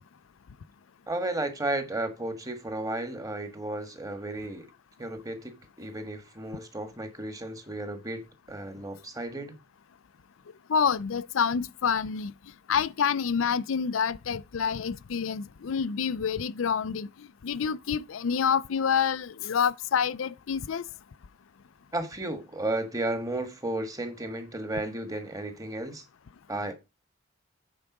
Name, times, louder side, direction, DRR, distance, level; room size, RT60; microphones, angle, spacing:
voice 1, 1.1-4.7 5.0-9.5 21.9-26.0 26.5-26.7, right 2 dB, 15° right, 1.5 m, -33 dB
voice 2, 10.7-12.3 12.7-20.8, left 6 dB, 80° left, 0.5 m, -27 dB
8.9 x 4.7 x 5.9 m
head